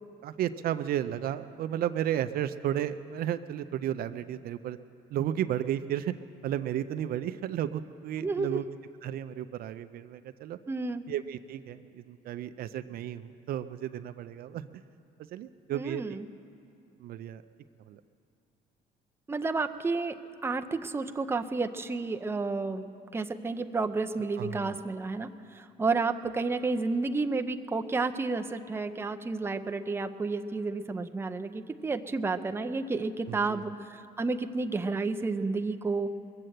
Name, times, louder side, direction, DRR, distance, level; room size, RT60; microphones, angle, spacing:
voice 1, 0.2-4.8 5.1-6.1 6.4-8.7 9.0-10.6 11.1-14.8 15.3-16.0 17.0-17.4 17.9-18.0 24.4-24.8 33.3-33.6, right 11 dB, 60° right, 11 dB, 0.5 m, -33 dB
voice 2, 8.2-8.6 10.7-11.0 15.7-16.3 19.3-20.1 20.4-36.1, right 3 dB, 15° right, 7 dB, 0.6 m, -31 dB
21.5 x 7.6 x 7.8 m, 2.6 s
cardioid pair, 110°, 17 cm